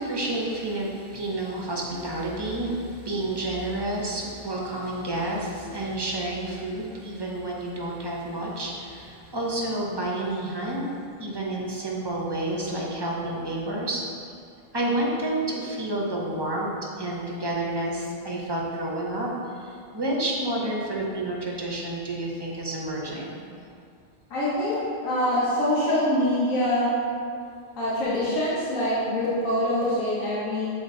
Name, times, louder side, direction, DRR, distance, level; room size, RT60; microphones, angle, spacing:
voice 1, 0.0-10.9 11.2-14.0 14.7-16.7 17.0-19.3 19.6-23.4, right 1 dB, 25° right, -3 dB, 0.7 m, -29 dB
voice 2, 24.3-24.8 25.0-26.9 27.8-30.7, left 1 dB, 85° left, -8 dB, 1.5 m, -24 dB
7.0 x 4.0 x 3.8 m, 2.3 s
omnidirectional pair, 1.3 m